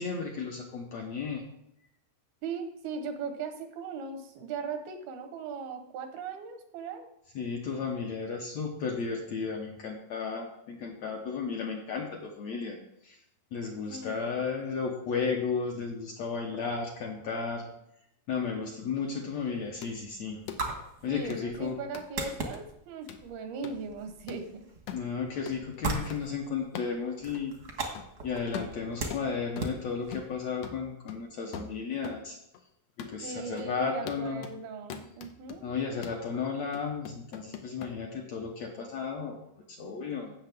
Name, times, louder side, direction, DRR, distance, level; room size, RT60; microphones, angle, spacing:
voice 1, 0.0-1.4 7.4-12.8 13.0-13.2 13.5-17.7 18.3-20.4 21.0-21.8 24.9-27.5 28.2-32.4 33.0-34.5 35.6-39.4 39.7-40.3, left 5 dB, 70° left, 0 dB, 1.7 m, -34 dB
voice 2, 2.4-7.1 13.9-14.4 21.1-24.6 33.2-35.7, right 5 dB, 85° right, 6 dB, 3.0 m, -38 dB
sound 1, 18.9-30.7, right 3 dB, 55° right, 1.0 m, -40 dB
sound 2, 19.8-19.9 20.5-20.6 21.3-21.4 21.9-22.1 22.5-22.6 23.1-23.3 23.6-23.8 24.3-24.4 24.9-25.1 25.5-25.6 26.1-26.2 26.7-27.0 27.3-27.4 27.9-28.1 28.5-29.8 30.1-30.4 30.6-32.2 32.5-32.6 33.0-33.2 33.6-33.7 34.1-34.6 34.9-35.6 36.0-36.2 36.7-37.9, left 8 dB, 85° left, 1.4 m, -43 dB
16.5 x 6.5 x 3.5 m, 0.80 s
omnidirectional pair, 4.2 m